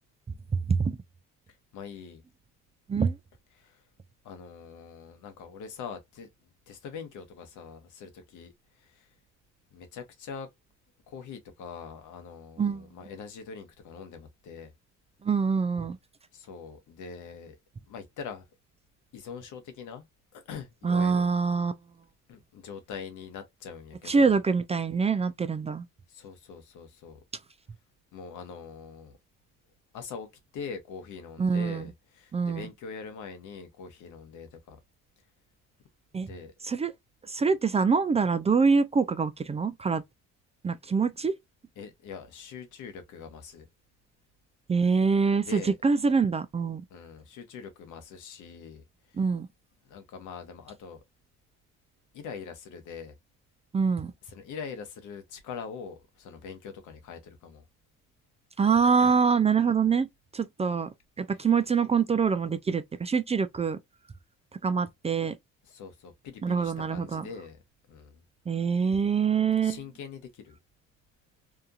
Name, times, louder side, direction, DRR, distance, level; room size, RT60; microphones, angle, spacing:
voice 1, 1.7-2.2 3.5-3.8 4.2-9.1 9.7-10.5 11.1-14.7 16.3-17.6 17.9-18.4 19.1-20.0 20.3-21.3 22.3-24.4 26.1-27.2 28.1-29.2 29.9-30.3 30.5-34.8 36.2-36.5 41.8-43.7 45.4-45.7 46.9-49.2 49.9-51.0 52.1-53.2 54.2-57.6 58.6-59.2 65.6-67.6 67.9-68.2 69.6-70.6, left 6 dB, 85° left, 0.9 m, -43 dB
voice 2, 15.2-16.0 20.8-21.7 24.1-25.8 31.4-31.9 32.3-32.7 36.1-36.3 36.6-36.9 37.3-40.0 40.6-41.3 44.7-46.8 49.2-49.5 53.7-54.1 58.6-60.1 60.3-60.9 61.2-63.8 64.6-65.4 66.4-67.3 68.5-69.8, right 5 dB, 20° right, 0.3 m, -25 dB
2.8 x 2.4 x 2.3 m
cardioid pair, 90°, 30 cm